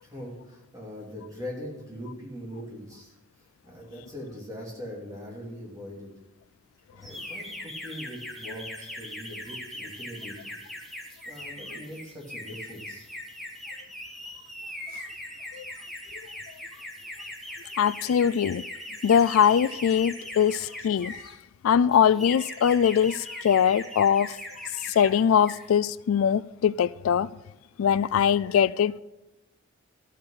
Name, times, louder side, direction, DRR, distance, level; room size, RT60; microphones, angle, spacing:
voice 1, 0.0-3.1 3.6-6.1 7.0-10.6 11.3-13.1, equal, 15° right, 3.0 m, -41 dB
sound 1, 7.0-21.3 21.9-25.1 25.4-25.7, left 1 dB, ahead, 1.3 m, -40 dB
voice 2, 17.8-18.6 19.0-21.2 21.6-24.4 24.7-27.3 27.8-29.0, left 8 dB, 85° left, 0.3 m, -22 dB
13.5 x 6.6 x 5.7 m
head